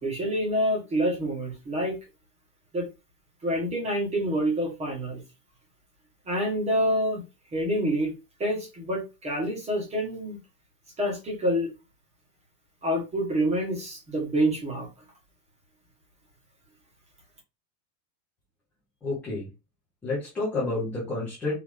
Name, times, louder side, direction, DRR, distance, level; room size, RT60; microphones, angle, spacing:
voice 1, 0.0-2.0 2.7-2.9 3.4-5.2 6.2-7.2 7.5-8.1 8.4-10.4 11.0-11.7 12.8-14.9, equal, 15° right, 0 dB, 1.5 m, -27 dB
voice 2, 19.0-19.5 20.0-21.5, left 2 dB, 5° left, -8 dB, 0.3 m, -29 dB
4.8 x 3.0 x 3.6 m, 0.26 s
supercardioid pair, 170°, 48 cm